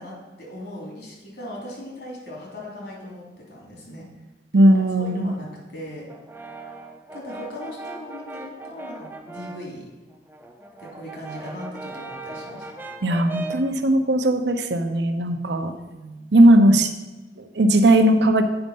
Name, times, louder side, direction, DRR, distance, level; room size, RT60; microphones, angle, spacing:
voice 1, 0.0-4.1 4.7-6.1 7.1-9.9 10.8-12.6 15.6-16.3, left 1 dB, 65° left, -2 dB, 2.8 m, -38 dB
voice 2, 4.5-5.3 13.0-15.7 16.3-16.9 17.4-18.4, right 1 dB, 75° right, 7 dB, 0.8 m, -17 dB
Brass instrument, 6.1-9.7 10.1-13.7, right 2 dB, 10° right, 0.5 m, -38 dB
7.9 x 5.2 x 5.4 m, 1.1 s
head